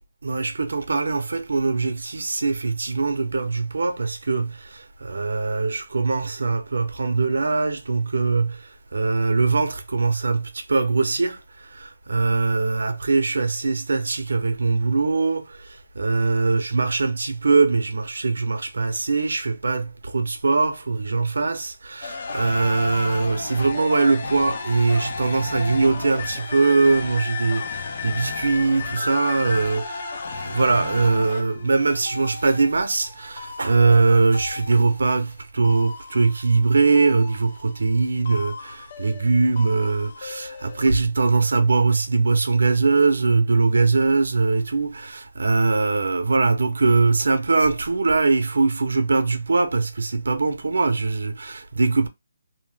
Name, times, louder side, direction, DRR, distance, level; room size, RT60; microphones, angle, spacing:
voice 1, 0.2-30.1 30.4-52.1, right 3 dB, 80° right, 0.7 m, -22 dB
sound 1, 22.0-35.3 35.6-38.0 38.2-40.9, left 4 dB, 40° left, 0.6 m, -34 dB
3.0 x 2.0 x 3.4 m
hypercardioid pair, 170°, 0 cm